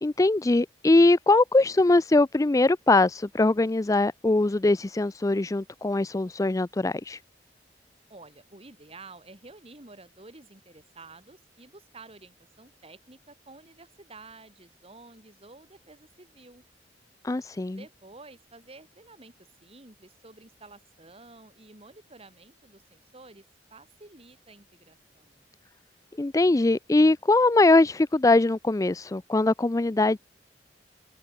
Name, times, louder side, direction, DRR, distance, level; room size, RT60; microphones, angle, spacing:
voice 1, 0.0-7.2 17.2-17.8 26.2-30.2, left 2 dB, 20° left, 0.4 m, -22 dB
voice 2, 8.1-16.6 17.7-23.4 23.7-25.4, right 3 dB, 35° right, 2.8 m, -50 dB
head